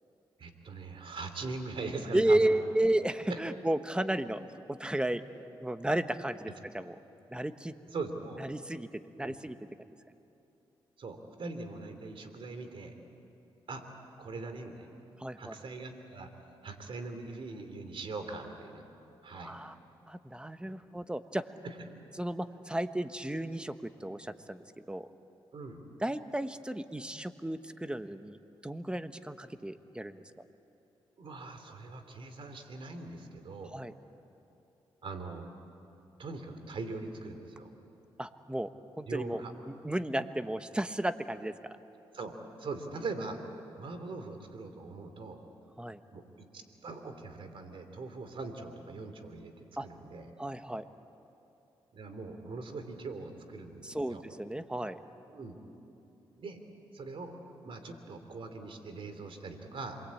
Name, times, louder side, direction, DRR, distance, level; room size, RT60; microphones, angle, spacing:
voice 1, 0.4-2.5 3.3-3.4 7.9-8.4 9.2-9.3 11.0-12.9 13.7-13.8 14.2-14.9 15.4-16.3 16.6-18.8 19.2-19.5 21.6-21.7 25.5-25.8 31.2-33.8 35.0-35.5 36.2-37.7 39.1-39.5 42.1-43.4 43.8-45.4 46.1-50.3 51.9-54.2 55.3-55.6 56.4-56.6 56.9-57.3 57.6-60.0, right 3 dB, 60° right, 7 dB, 3.2 m, -41 dB
voice 2, 2.1-4.4 4.7-5.2 5.6-7.0 7.3-7.7 8.4-9.6 15.2-15.5 19.4-19.7 20.1-21.5 22.2-25.1 26.0-30.2 33.7-33.9 38.2-38.7 39.0-39.4 39.7-41.5 45.8-46.0 49.8-49.9 50.4-50.9 53.8-55.0, right 1 dB, 10° right, 10 dB, 1.3 m, -33 dB
27.5 x 22.5 x 8.6 m, 2.9 s
cardioid pair, 65°, 10 cm